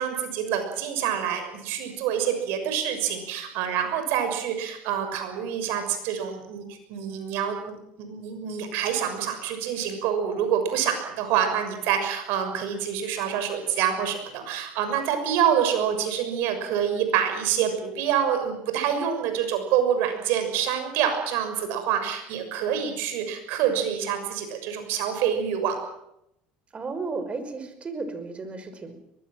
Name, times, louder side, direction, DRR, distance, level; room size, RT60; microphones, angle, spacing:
voice 1, 0.0-25.8, right 8 dB, 70° right, 7 dB, 6.5 m, -26 dB
voice 2, 26.7-29.0, right 3 dB, 30° right, 10 dB, 5.4 m, -34 dB
23.0 x 21.0 x 7.7 m, 0.82 s
supercardioid pair, 85°, 4 cm